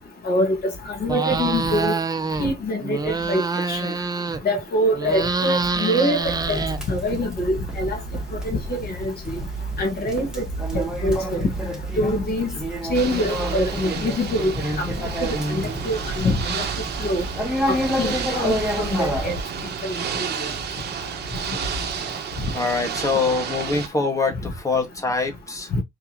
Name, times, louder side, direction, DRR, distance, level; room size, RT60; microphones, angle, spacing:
voice 1, 0.2-0.7 1.0-2.0 2.4-3.4 3.7-3.9 4.4-6.6 6.9-8.0 8.4-9.4 9.8-10.4 10.7-11.5 12.0-12.5 12.9-16.6 17.0-17.2 17.7-19.3 19.8-19.9 20.4-20.5 25.7-25.8, equal, 60° left, 2.4 m, -24 dB
sound 1, 1.1-2.5 2.8-4.6 4.9-7.2, right 4 dB, 20° right, 0.7 m, -26 dB
Conversation, 6.2-19.4, equal, 5° right, 2.0 m, -29 dB
Ocean / Boat Water vehicle, 12.9-23.9, right 7 dB, 70° right, 1.3 m, -31 dB
voice 2, 22.5-25.7, left 4 dB, 20° left, 2.0 m, -24 dB
4.8 x 3.5 x 3.1 m
cardioid pair, 95°, 18 cm